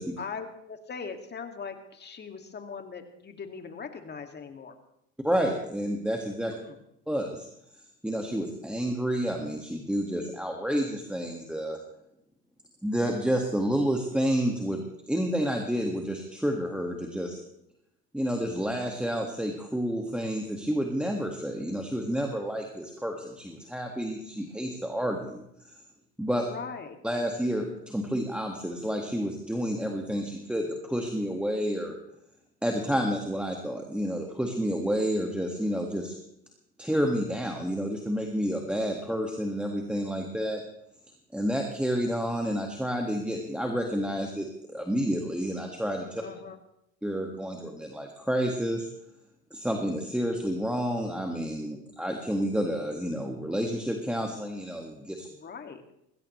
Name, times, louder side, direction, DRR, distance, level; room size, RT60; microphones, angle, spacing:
voice 1, 0.2-4.7 6.5-6.8 26.5-27.0 46.2-46.6 55.3-55.8, left 5 dB, 30° left, 6 dB, 2.2 m, -40 dB
voice 2, 5.2-6.5 7.1-7.5 8.0-11.8 12.8-14.8 15.1-17.4 18.1-25.7 26.2-26.5 27.0-32.0 32.6-36.2 36.8-40.6 41.3-46.2 47.0-48.9 49.5-55.3, equal, 5° right, 2 dB, 1.9 m, -30 dB
20.5 x 16.5 x 3.2 m, 0.78 s
supercardioid pair, 90°, 34 cm